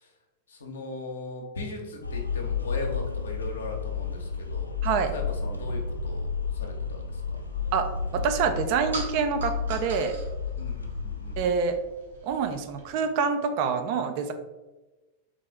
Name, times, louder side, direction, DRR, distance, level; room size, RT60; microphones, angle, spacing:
voice 1, 0.5-4.7 5.1-6.3 6.5-7.4 10.6-11.4, left 2 dB, 65° left, 1 dB, 0.8 m, -38 dB
sound 1, 2.0-11.5, left 5 dB, 85° left, 0.4 m, -32 dB
voice 2, 4.8-5.1 7.7-10.2 11.4-11.8 12.2-14.3, right 6 dB, 45° right, 7 dB, 0.4 m, -26 dB
sound 2, 7.4-12.9, right 3 dB, 70° right, 1.0 m, -43 dB
3.3 x 3.2 x 3.6 m, 1.1 s
figure-of-eight pair, 90°, 0 cm